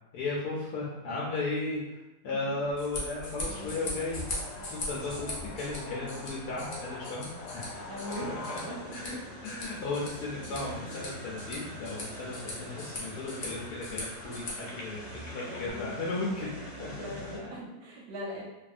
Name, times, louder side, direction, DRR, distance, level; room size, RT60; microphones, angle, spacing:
voice 1, 0.1-4.2 4.6-7.8 8.1-8.4 8.9-9.2 9.4-17.3, left 3 dB, 70° left, -4 dB, 1.0 m, -35 dB
sound 1, 2.3-12.2 12.9-13.0 13.2-15.7, left 2 dB, 90° left, 1.4 m, -46 dB
sound 2, 2.6-14.5, left 1 dB, 55° left, 0.7 m, -41 dB
sound 3, 3.4-17.4, right 1 dB, 50° right, 0.5 m, -46 dB
voice 2, 7.9-8.8 15.4-16.1 16.9-18.4, equal, 70° right, -2 dB, 1.0 m, -40 dB
2.7 x 2.5 x 2.4 m, 1.0 s
omnidirectional pair, 1.9 m